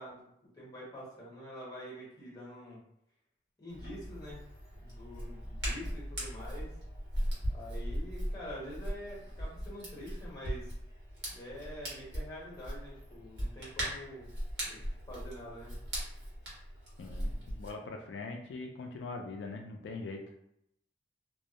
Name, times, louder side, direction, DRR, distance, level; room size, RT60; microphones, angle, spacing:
voice 1, 0.0-2.8 3.6-4.4 4.8-6.7 7.5-10.8 11.3-14.3 14.6-14.8 15.1-15.7, equal, 20° left, -6 dB, 0.9 m, -46 dB
Hands, 3.7-17.7, equal, 80° right, 1.0 m, -39 dB
voice 2, 17.0-20.2, left 3 dB, 85° left, 2 dB, 0.3 m, -42 dB
2.2 x 2.0 x 2.8 m, 0.78 s
head